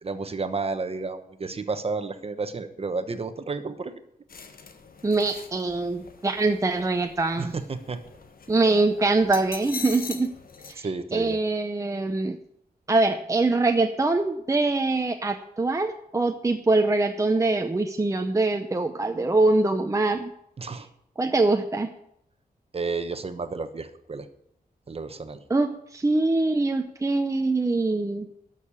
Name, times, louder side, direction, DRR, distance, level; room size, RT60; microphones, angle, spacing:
voice 1, 0.0-3.9 7.4-8.0 8.7-8.8 10.8-11.4 20.6-20.9 22.7-24.3 24.9-25.4, right 4 dB, 40° right, 10 dB, 1.1 m, -31 dB
sound 1, 4.3-10.7, left 4 dB, 70° left, 1.5 m, -42 dB
voice 2, 5.0-7.5 8.5-10.3 10.7-10.8 11.1-12.4 12.9-20.3 21.2-21.9 25.5-28.3, right 2 dB, 20° right, 5 dB, 0.7 m, -23 dB
12.5 x 6.6 x 8.7 m, 0.75 s
wide cardioid pair, 145°, 16 cm